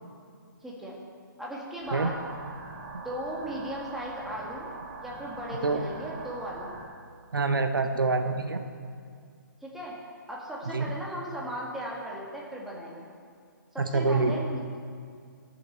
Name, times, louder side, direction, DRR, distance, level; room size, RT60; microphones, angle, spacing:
voice 1, 0.6-0.9 1.4-2.2 3.0-4.7 5.0-6.7 9.6-9.9 10.3-13.1 13.7-14.6, equal, ahead, -5 dB, 2.0 m, -37 dB
sound 1, 1.8-6.8, right 4 dB, 35° right, 1.6 m, -43 dB
voice 2, 7.3-8.6 10.7-10.9 13.8-14.3, right 3 dB, 80° right, 6 dB, 1.1 m, -26 dB
18.0 x 7.5 x 4.4 m, 2.2 s
hypercardioid pair, 150°, 11 cm